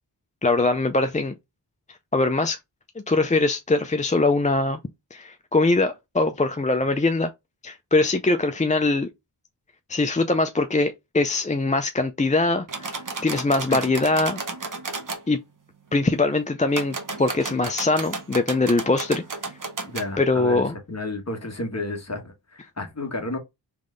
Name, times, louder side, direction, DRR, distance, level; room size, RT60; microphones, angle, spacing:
voice 1, 0.4-1.3 2.1-2.6 3.1-4.8 5.1-7.3 7.6-9.1 9.9-12.9 13.2-14.4 15.3-15.4 15.9-19.2 20.2-20.7, left 2 dB, 20° left, 0.4 m, -22 dB
sound 1, 12.7-15.2 16.7-20.1, right 3 dB, 45° right, 1.0 m, -33 dB
voice 2, 19.9-23.4, left 2 dB, 35° left, 1.4 m, -32 dB
3.5 x 3.3 x 3.7 m
wide cardioid pair, 60°, 43 cm